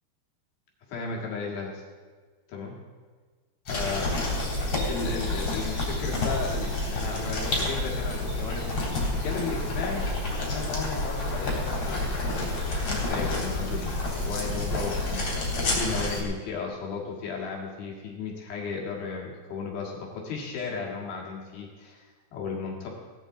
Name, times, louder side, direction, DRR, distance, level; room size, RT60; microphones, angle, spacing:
voice 1, 0.9-1.8 2.5-2.8 3.7-4.2 4.9-13.9 14.2-22.9, left 5 dB, 65° left, -2 dB, 3.6 m, -35 dB
sound 1, 3.7-16.2, left 2 dB, 30° left, 3.5 m, -29 dB
17.5 x 12.0 x 3.8 m, 1.5 s
omnidirectional pair, 4.9 m